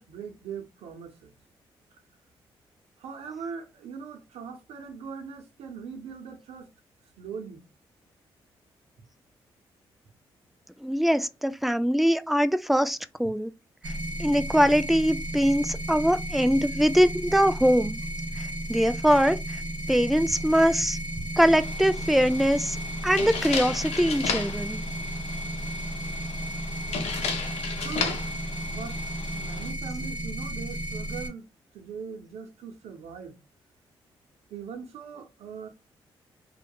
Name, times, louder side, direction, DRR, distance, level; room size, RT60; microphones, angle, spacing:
voice 1, 0.0-1.3 3.0-6.7 7.2-7.6 21.2-21.3 27.8-28.3 28.7-29.0 29.3-31.5 31.7-33.4 34.5-35.7, right 6 dB, 80° right, 0.7 m, -40 dB
voice 2, 10.8-13.5 14.2-18.0 18.4-19.6 19.9-21.0 21.4-22.8 23.0-24.8, equal, ahead, 0.3 m, -23 dB
sound 1, 13.8-31.3, right 1 dB, 45° right, 1.0 m, -34 dB
sound 2, 21.4-29.7, left 6 dB, 80° left, 0.5 m, -35 dB
2.7 x 2.3 x 2.2 m
supercardioid pair, 55°, 10 cm